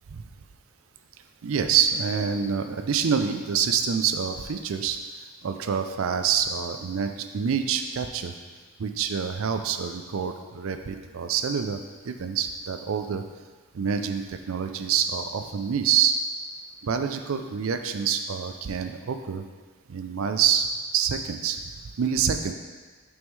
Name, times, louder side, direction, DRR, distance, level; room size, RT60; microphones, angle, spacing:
voice 1, 1.4-5.0 5.4-8.3 8.8-11.8 12.0-13.2 13.7-16.2 16.8-19.4 19.9-20.7 20.9-22.5, right 7 dB, 65° right, 7 dB, 0.4 m, -26 dB
6.2 x 5.3 x 3.2 m, 1.4 s
head